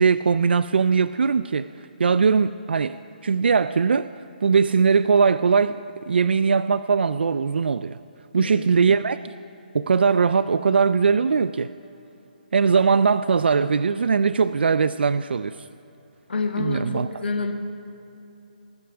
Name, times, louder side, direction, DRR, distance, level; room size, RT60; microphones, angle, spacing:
voice 1, 0.0-3.0 3.2-4.1 4.4-8.0 8.3-9.3 9.7-11.7 12.5-15.6 16.6-17.1, right 5 dB, 85° right, 14 dB, 0.4 m, -20 dB
voice 2, 8.3-8.7 16.3-17.5, left 4 dB, 90° left, 3 dB, 1.5 m, -28 dB
24.0 x 11.0 x 3.4 m, 2.9 s
hypercardioid pair, 175°, 5 cm